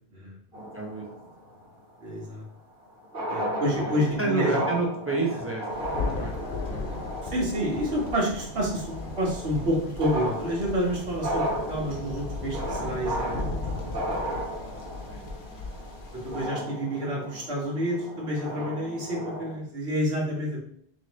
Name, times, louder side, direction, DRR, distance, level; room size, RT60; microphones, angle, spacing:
voice 1, 0.5-1.0 3.4-7.0 15.1-15.8, right 3 dB, 15° right, -2 dB, 0.7 m, -32 dB
sound 1, 0.5-1.6 2.8-2.9 3.0-19.6, equal, 70° right, 1.5 m, -35 dB
voice 2, 2.0-2.4 3.3-4.5 7.3-13.9 16.2-20.6, equal, 90° right, -2 dB, 1.5 m, -29 dB
Thunder, 5.7-16.5, left 3 dB, 60° left, 0.9 m, -36 dB
4.3 x 3.1 x 3.0 m, 0.66 s
omnidirectional pair, 1.0 m